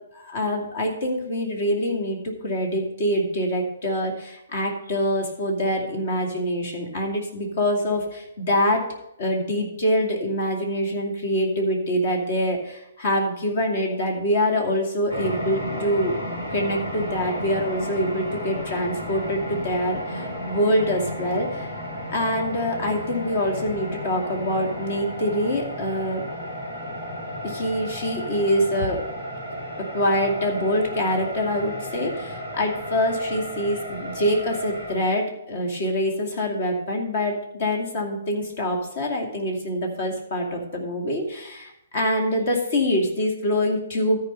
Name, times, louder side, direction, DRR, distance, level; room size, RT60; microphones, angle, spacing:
voice 1, 0.1-8.9 9.2-16.2 16.5-21.7 22.1-26.3 27.4-29.0 29.8-44.2, equal, 50° left, 1 dB, 2.4 m, -25 dB
sound 1, 15.1-34.9, equal, 70° left, 4.1 m, -33 dB
13.5 x 4.8 x 5.5 m, 0.83 s
figure-of-eight pair, 125°, 0 cm